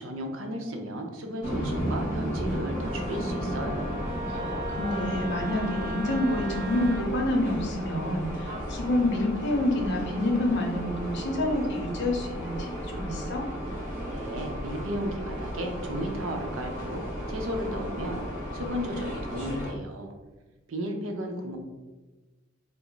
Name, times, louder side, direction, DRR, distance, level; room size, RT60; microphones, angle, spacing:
voice 1, 0.0-4.1 14.1-17.0 17.3-18.2 18.5-20.1 20.7-21.6, equal, 85° right, 3 dB, 0.6 m, -34 dB
sound 1, 1.4-19.7, equal, 45° right, 1.4 m, -34 dB
Wind instrument woodwind instrument, 2.8-7.1, right 1 dB, 15° right, 1.2 m, -38 dB
voice 2, 4.3-13.5, left 1 dB, 60° left, 1 dB, 0.7 m, -28 dB
3.4 x 2.0 x 3.8 m, 1.2 s
head